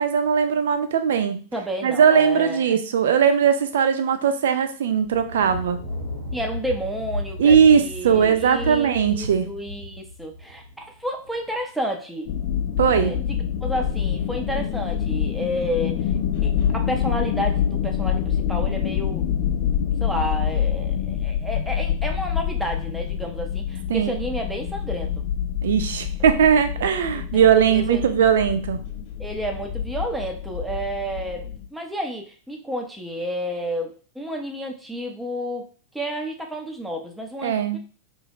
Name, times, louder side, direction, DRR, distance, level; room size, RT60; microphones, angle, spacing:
voice 1, 0.0-1.4 1.8-5.8 7.4-9.5 12.8-13.1 23.9-24.2 25.6-28.8 37.4-37.8, right 7 dB, 60° right, 9 dB, 0.4 m, -19 dB
voice 2, 1.5-2.8 6.3-12.3 12.9-16.1 16.4-19.3 20.0-25.2 26.2-26.3 27.1-28.0 29.2-35.6 35.9-37.8, equal, 5° right, 1 dB, 0.6 m, -31 dB
Thunder, 4.9-11.6, left 1 dB, 85° right, 1.3 m, -34 dB
sound 1, 12.3-31.7, left 9 dB, 45° left, 0.5 m, -26 dB
2.7 x 2.2 x 3.4 m, 0.39 s
figure-of-eight pair, 90°, 0 cm